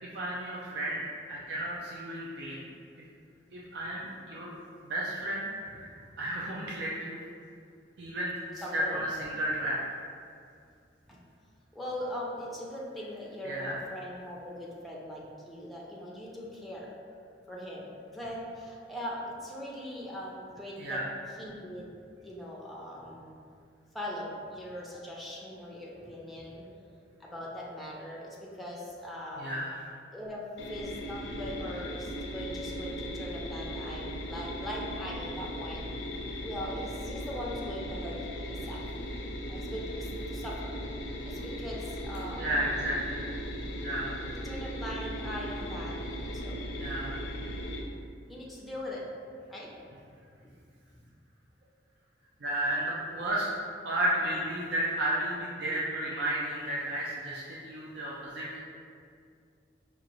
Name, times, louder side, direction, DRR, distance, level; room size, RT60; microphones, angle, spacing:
voice 1, 0.0-2.6 3.5-4.5 4.8-7.2 8.0-9.8 13.4-13.8 20.8-21.1 29.4-29.7 42.4-43.2 43.8-44.1 46.8-47.1 52.4-53.5 53.8-58.6, right 1 dB, 65° right, -5 dB, 0.5 m, -33 dB
voice 2, 8.6-9.0 11.1-11.2 11.7-16.9 17.5-21.0 21.3-21.9 22.2-23.3 23.9-26.6 27.2-29.5 30.1-35.9 36.4-38.8 39.5-40.7 41.3-42.7 44.4-46.0 46.3-46.6 48.3-49.1 49.5-49.7 50.4-50.5 50.9-51.0, equal, ahead, -5 dB, 0.5 m, -40 dB
sound 1, 30.6-47.8, equal, 90° left, 0.5 m, -38 dB
5.0 x 2.5 x 3.0 m, 2.3 s
head